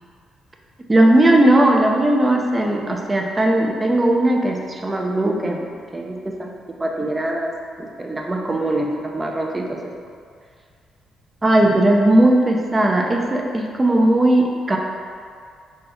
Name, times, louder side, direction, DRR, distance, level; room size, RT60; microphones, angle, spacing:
voice 1, 0.9-5.7 5.9-6.5 6.8-7.5 7.8-9.9 11.4-14.8, right 1 dB, 20° right, 1 dB, 0.5 m, -18 dB
3.4 x 3.2 x 3.0 m, 2.1 s
cardioid pair, 90°, 0 cm